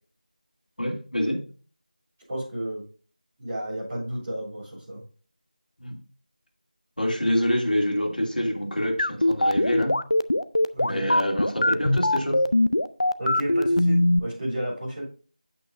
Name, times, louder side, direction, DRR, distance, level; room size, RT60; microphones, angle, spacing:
voice 1, 0.8-1.4 5.8-6.0 7.0-10.0 10.8-12.4, equal, 90° left, 1 dB, 2.6 m, -26 dB
voice 2, 2.3-2.8 3.4-5.0 10.7-11.0 13.2-15.0, right 1 dB, 15° right, -11 dB, 3.7 m, -32 dB
sound 1, 9.0-14.2, left 1 dB, 45° left, 0.4 m, -21 dB
8.4 x 8.3 x 2.5 m, 0.39 s
figure-of-eight pair, 175°, 5 cm